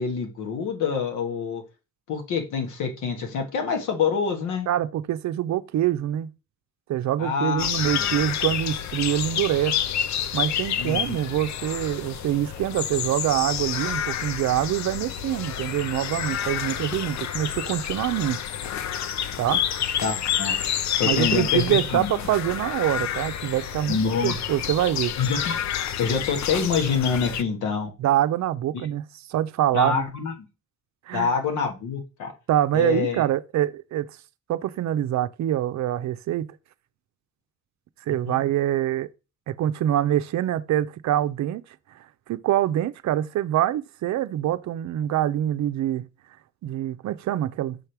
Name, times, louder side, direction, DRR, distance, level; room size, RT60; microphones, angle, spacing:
voice 1, 0.0-1.6 2.1-4.7 7.2-7.7 8.0-8.1 10.8-11.2 20.0-20.6 21.0-22.1 23.9-24.3 25.2-25.6 26.0-27.9 28.7-28.8 29.7-30.3 31.1-32.3 32.7-33.2 38.3-38.4, left 5 dB, 85° left, 1.7 m, -26 dB
voice 2, 4.7-6.3 6.9-9.8 10.3-18.4 19.4-19.6 21.0-25.1 28.0-29.0 29.3-30.0 31.1-31.3 32.5-34.1 34.5-36.5 38.1-39.1 39.5-41.6 42.3-46.1 46.6-47.8, right 12 dB, 65° right, 0.6 m, -25 dB
sound 1, 7.6-27.4, left 9 dB, 65° left, 0.6 m, -29 dB
6.3 x 3.4 x 5.9 m
cardioid pair, 90°, 30 cm